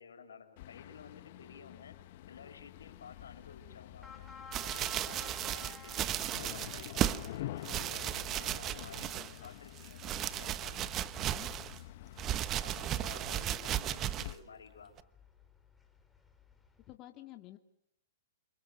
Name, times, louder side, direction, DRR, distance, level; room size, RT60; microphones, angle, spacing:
voice 1, 0.0-2.0 2.3-4.3 4.6-6.0 6.3-10.8 12.6-15.0, left 6 dB, 85° left, 8 dB, 5.3 m, -53 dB
sound 1, 0.6-14.3, left 15 dB, 50° left, 1.3 m, -48 dB
sound 2, 3.2-17.0, left 3 dB, 5° left, 4.5 m, -56 dB
sound 3, 4.5-7.3 7.6-9.5 9.8-11.8 12.2-14.4 15.0-15.1, right 12 dB, 25° right, 1.1 m, -35 dB
voice 2, 16.9-17.6, left 15 dB, 35° left, 4 dB, 2.6 m, -50 dB
28.5 x 27.5 x 6.9 m, 0.76 s
hypercardioid pair, 135°, 0 cm